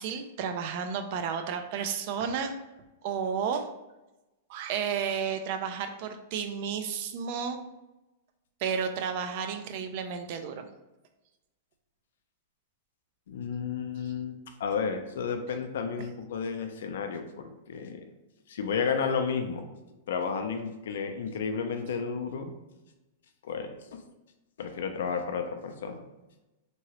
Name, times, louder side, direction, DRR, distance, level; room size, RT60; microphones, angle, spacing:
voice 1, 0.0-2.5 3.0-3.7 4.5-7.6 8.6-10.7 14.0-14.1, right 7 dB, 45° right, 7 dB, 0.3 m, -32 dB
voice 2, 13.3-18.0 18.5-19.7 20.1-22.5 23.4-24.0 24.6-26.0, left 6 dB, 80° left, 6 dB, 0.5 m, -32 dB
3.0 x 2.8 x 2.9 m, 1.0 s
supercardioid pair, 160°, 0 cm